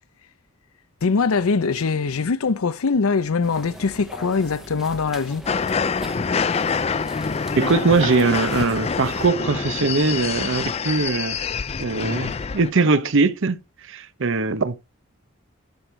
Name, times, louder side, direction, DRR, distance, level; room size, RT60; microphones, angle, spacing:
voice 1, 1.0-5.4, left 4 dB, 85° left, 0.6 m, -22 dB
sound 1, 3.4-9.3, equal, ahead, 0.9 m, -40 dB
sound 2, 5.5-12.7, left 5 dB, 30° left, 0.4 m, -26 dB
voice 2, 7.6-11.4 11.8-13.6 13.9-14.8, right 3 dB, 60° right, 0.8 m, -21 dB
11.5 x 6.3 x 3.3 m
head